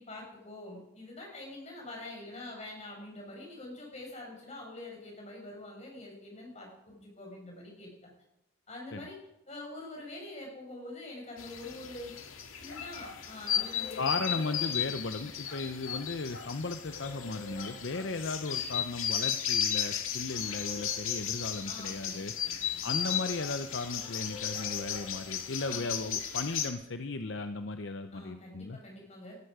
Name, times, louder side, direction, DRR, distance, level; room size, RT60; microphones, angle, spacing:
voice 1, 0.0-8.1 8.7-9.2 9.5-12.1 12.6-14.6 21.7-22.8 25.6-25.9 28.1-29.4, left 2 dB, 35° left, 0 dB, 5.8 m, -45 dB
sound 1, 11.4-26.7, left 8 dB, 85° left, 1.9 m, -35 dB
voice 2, 14.0-22.3 22.8-28.8, left 3 dB, 60° left, 8 dB, 0.7 m, -36 dB
18.5 x 12.5 x 5.0 m, 0.88 s
head